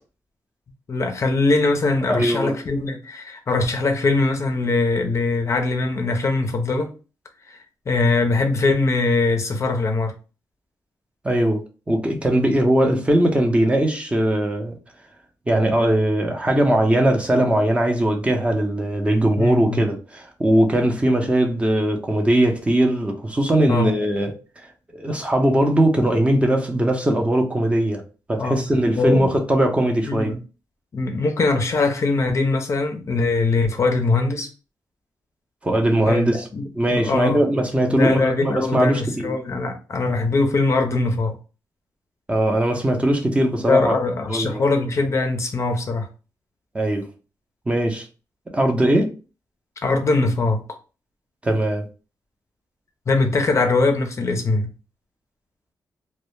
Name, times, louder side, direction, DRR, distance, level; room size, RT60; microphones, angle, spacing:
voice 1, 0.9-6.9 7.5-10.1 19.4-19.8 23.7-23.9 28.4-28.6 28.9-29.3 30.1-30.4 30.9-34.5 36.1-37.4 37.9-41.3 43.7-46.1 49.8-50.8 53.1-54.7, left 3 dB, 40° left, 0.4 m, -21 dB
voice 2, 2.1-2.6 11.2-14.7 15.5-24.3 24.9-28.0 28.3-30.3 35.6-36.5 36.7-39.3 42.3-44.0 44.3-44.6 46.7-47.1 47.7-48.1 48.5-49.1 51.4-51.9, right 1 dB, 15° right, 0.5 m, -20 dB
2.1 x 2.0 x 3.0 m
cardioid pair, 100°, 7 cm